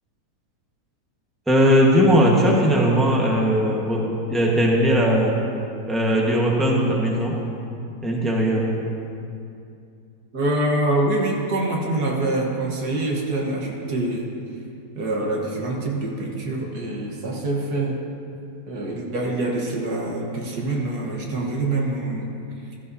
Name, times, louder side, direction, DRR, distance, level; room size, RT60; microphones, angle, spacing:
voice 1, 1.5-5.4 5.9-7.4 8.0-8.7, equal, ahead, -2 dB, 1.1 m, -19 dB
voice 2, 10.3-14.3 15.0-18.0 18.7-22.3, right 2 dB, 75° right, -1 dB, 1.9 m, -25 dB
15.5 x 13.5 x 2.8 m, 2.5 s
omnidirectional pair, 1.7 m